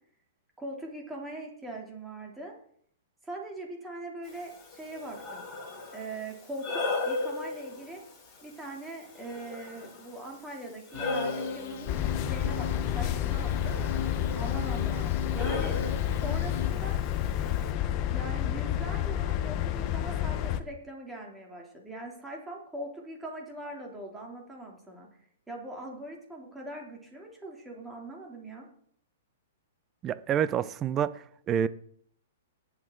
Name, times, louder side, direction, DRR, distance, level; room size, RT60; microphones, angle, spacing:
voice 1, 0.6-2.5 3.2-5.4 5.9-8.0 8.4-12.0 12.2-13.8 14.3-15.8 16.2-17.0 18.1-25.1 25.5-28.7, right 1 dB, 5° right, 3.1 m, -41 dB
Breathing, 4.2-17.7, left 3 dB, 20° left, 5.7 m, -38 dB
sound 1, 10.9-16.7, left 4 dB, 50° left, 1.6 m, -38 dB
sound 2, 11.9-20.6, left 11 dB, 35° left, 0.8 m, -30 dB
voice 2, 30.0-31.7, right 9 dB, 25° right, 0.6 m, -28 dB
19.0 x 7.4 x 3.9 m
hypercardioid pair, 145°, 0 cm